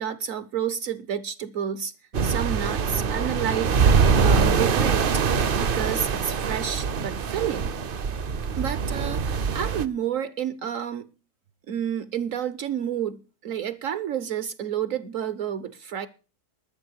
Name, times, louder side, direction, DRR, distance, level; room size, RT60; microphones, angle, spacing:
voice 1, 0.0-1.9 2.2-5.2 5.6-7.7 8.6-11.1 11.7-16.1, right 9 dB, 65° right, 15 dB, 1.1 m, -30 dB
sound 1, 2.1-9.8, right 5 dB, 50° right, 0.7 m, -23 dB
12.5 x 6.9 x 8.4 m, 0.35 s
omnidirectional pair, 1.6 m